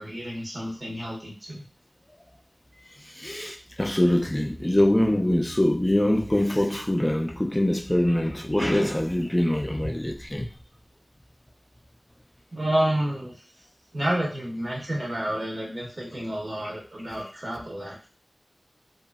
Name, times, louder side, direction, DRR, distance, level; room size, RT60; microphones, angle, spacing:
voice 1, 0.0-1.6 12.5-13.4 13.9-18.1, right 1 dB, 60° right, 1.2 m, -29 dB
voice 2, 3.2-10.5 16.1-16.2, left 1 dB, 20° left, 0.4 m, -24 dB
2.8 x 2.5 x 2.3 m
wide cardioid pair, 40°, 0 cm